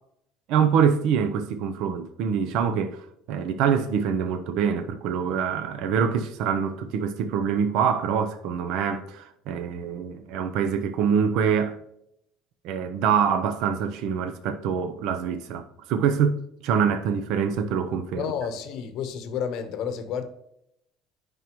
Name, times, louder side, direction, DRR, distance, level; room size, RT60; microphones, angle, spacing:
voice 1, 0.5-11.8 12.6-18.2, right 7 dB, 60° right, 0.6 m, -25 dB
voice 2, 18.1-20.2, left 7 dB, 50° left, 0.9 m, -30 dB
9.3 x 5.4 x 3.0 m
cardioid pair, 180°, 0 cm